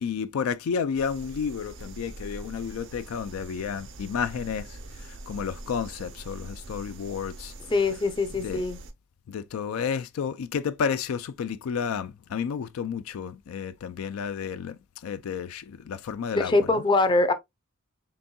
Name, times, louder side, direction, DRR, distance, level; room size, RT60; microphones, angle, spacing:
voice 1, 0.0-7.5 8.4-8.6 9.3-16.8, left 6 dB, 80° left, 0.4 m, -31 dB
sound 1, 0.9-8.9, right 2 dB, 60° right, 0.6 m, -43 dB
voice 2, 7.7-8.8 16.3-17.3, left 2 dB, 25° left, 0.5 m, -23 dB
4.0 x 3.4 x 2.2 m
head